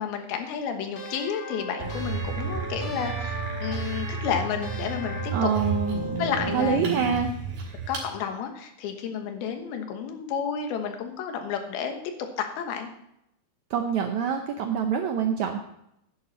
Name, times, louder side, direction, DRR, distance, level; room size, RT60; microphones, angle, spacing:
voice 1, 0.0-5.5 6.2-7.0 7.9-12.9, left 7 dB, 90° left, 5 dB, 3.1 m, -31 dB
sound 1, 1.0-6.7, equal, 35° left, 1.1 m, -38 dB
sound 2, 1.8-8.1, right 4 dB, 60° right, 4.4 m, -32 dB
voice 2, 5.3-6.0 6.5-7.3 13.7-15.6, right 7 dB, 80° right, 4 dB, 1.7 m, -25 dB
11.0 x 10.5 x 4.1 m, 0.79 s
omnidirectional pair, 4.3 m